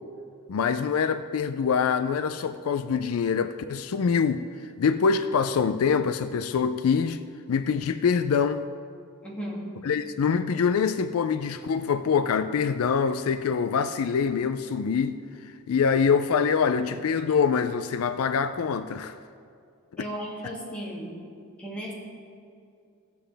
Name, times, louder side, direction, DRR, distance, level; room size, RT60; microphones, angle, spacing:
voice 1, 0.5-4.4 4.8-7.2 7.5-8.7 9.8-15.2 15.7-19.1, left 6 dB, 75° left, 10 dB, 0.4 m, -24 dB
voice 2, 9.2-9.8 20.0-21.1 21.6-21.9, equal, 5° left, -6 dB, 2.2 m, -35 dB
16.5 x 7.8 x 3.4 m, 2.4 s
head